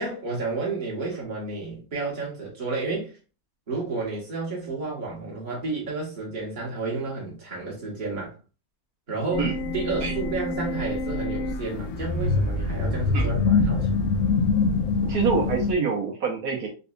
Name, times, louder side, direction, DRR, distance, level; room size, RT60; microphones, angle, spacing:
voice 1, 0.0-3.1 3.7-8.3 9.1-14.0, right 3 dB, 35° right, -4 dB, 1.5 m, -31 dB
sound 1, 9.3-15.7, left 4 dB, 70° left, 0.8 m, -25 dB
voice 2, 15.0-16.7, right 6 dB, 75° right, -1 dB, 1.3 m, -26 dB
3.9 x 2.6 x 2.5 m, 0.33 s
omnidirectional pair, 1.5 m